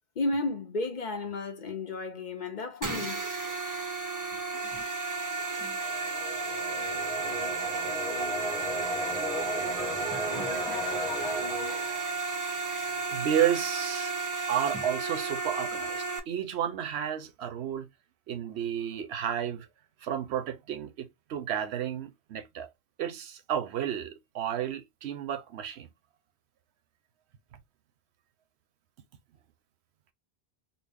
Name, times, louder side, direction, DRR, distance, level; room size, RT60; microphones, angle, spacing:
voice 1, 0.2-3.2, left 2 dB, 50° left, 0.9 m, -32 dB
sound 1, 2.8-16.2, right 3 dB, 30° right, 0.4 m, -33 dB
sound 2, 5.5-13.3, equal, 5° left, 0.9 m, -36 dB
voice 2, 13.1-14.1 14.5-17.9 18.3-19.7 20.0-22.7 23.0-25.9, right 10 dB, 85° right, 0.9 m, -32 dB
4.0 x 2.0 x 3.3 m
omnidirectional pair, 1.1 m